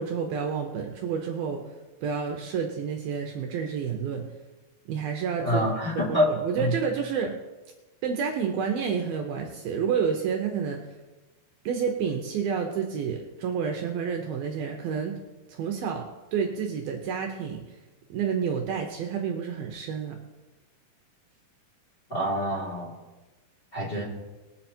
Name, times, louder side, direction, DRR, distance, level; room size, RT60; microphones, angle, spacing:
voice 1, 0.0-1.6 2.0-4.2 4.9-5.6 6.0-7.3 8.0-10.9 11.6-15.2 15.5-17.8 18.1-20.2, right 6 dB, 70° right, 2 dB, 2.6 m, -29 dB
voice 2, 5.4-6.3 6.6-6.7 22.1-22.9 23.7-24.0, equal, 15° left, -5 dB, 2.8 m, -26 dB
21.0 x 7.7 x 4.4 m, 1.2 s
omnidirectional pair, 4.8 m